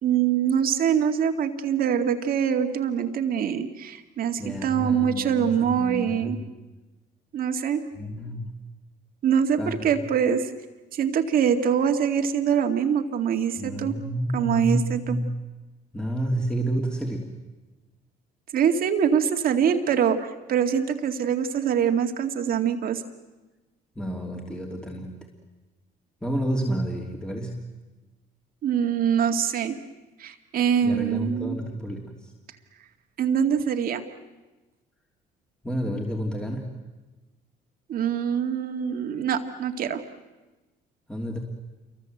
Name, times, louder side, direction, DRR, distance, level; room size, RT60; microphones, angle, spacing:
voice 1, 0.0-6.4 7.3-7.8 9.2-10.5 10.9-13.9 14.3-15.2 18.5-23.0 28.6-29.8 30.2-31.6 33.2-34.0 37.9-40.0, right 8 dB, 60° right, 6 dB, 2.2 m, -24 dB
voice 2, 4.4-6.4 7.9-8.5 9.6-10.0 13.6-15.3 15.9-17.3 24.0-25.2 26.2-27.6 30.8-32.3 35.6-36.7 41.1-41.4, right 1 dB, 5° left, 0 dB, 3.0 m, -30 dB
28.5 x 23.5 x 8.0 m, 1.2 s
cardioid pair, 110°, 17 cm